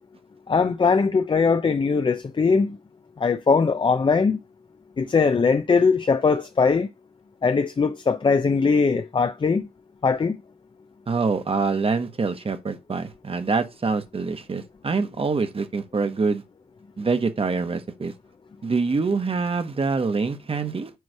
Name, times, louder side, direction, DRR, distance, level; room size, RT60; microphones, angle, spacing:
voice 1, 0.5-2.8 3.2-4.4 5.0-6.9 7.4-9.7 10.0-10.4, left 5 dB, 30° left, 0.5 m, -20 dB
voice 2, 11.1-16.4 17.0-18.1 18.6-20.9, right 4 dB, 35° right, 1.0 m, -25 dB
9.3 x 3.2 x 6.4 m
wide cardioid pair, 160°, 16 cm